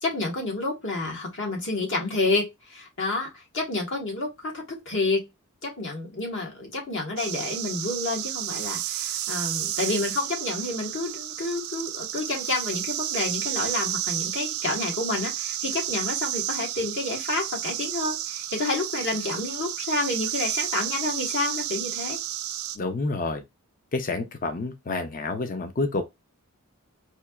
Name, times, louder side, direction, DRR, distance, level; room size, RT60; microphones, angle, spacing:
voice 1, 0.0-5.3 5.6-22.2, left 2 dB, 60° left, 1.4 m, -29 dB
sound 1, 7.2-22.8, right 12 dB, 70° right, 0.4 m, -31 dB
voice 2, 22.8-23.4 23.9-26.0, left 3 dB, 40° left, 0.6 m, -28 dB
4.3 x 2.8 x 2.3 m
head